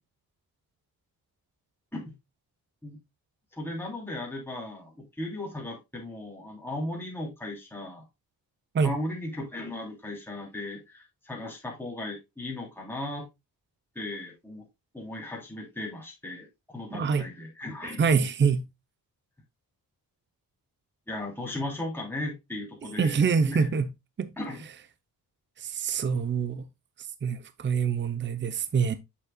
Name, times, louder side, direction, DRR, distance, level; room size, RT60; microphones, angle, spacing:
voice 1, 3.5-8.0 8.8-13.3 13.9-14.6 14.9-18.0 21.1-23.7 24.4-24.6, left 1 dB, 5° left, 3.1 m, -36 dB
voice 2, 16.9-17.3 17.8-18.7 23.0-23.9 24.2-24.3 25.6-26.7 27.2-29.0, right 6 dB, 30° right, 0.7 m, -25 dB
7.7 x 7.0 x 2.3 m
cardioid pair, 85°, 36 cm